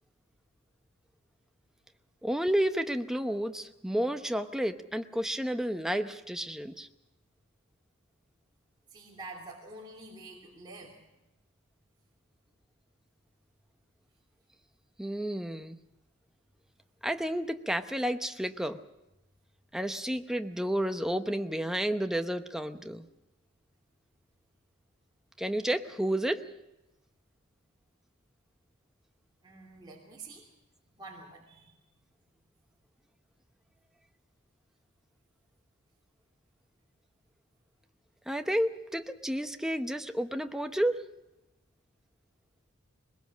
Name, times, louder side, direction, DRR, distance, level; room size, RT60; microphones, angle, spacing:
voice 1, 2.2-6.9 15.0-15.8 17.0-18.8 19.7-23.1 25.4-26.4 38.3-41.0, right 1 dB, 5° right, 7 dB, 0.8 m, -31 dB
voice 2, 8.9-11.1 29.4-30.5 31.0-31.9, right 2 dB, 20° right, -5 dB, 3.1 m, -47 dB
21.5 x 21.0 x 6.4 m, 0.96 s
head